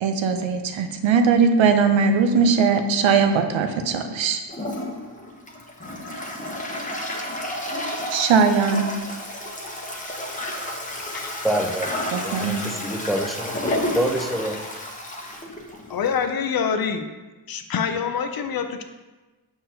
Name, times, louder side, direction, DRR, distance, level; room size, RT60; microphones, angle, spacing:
voice 1, 0.0-4.4 8.1-8.8 12.1-12.7, right 5 dB, 80° right, 7 dB, 0.7 m, -20 dB
Toilet flush, 4.5-16.3, left 1 dB, 15° left, 0.9 m, -31 dB
voice 2, 11.4-11.9 12.2-13.5 13.9-14.6, right 1 dB, ahead, 2 dB, 0.6 m, -26 dB
voice 3, 15.9-17.1 17.5-18.8, left 6 dB, 50° left, 7 dB, 0.6 m, -25 dB
6.1 x 5.7 x 2.8 m, 1.2 s
cardioid pair, 90°, 46 cm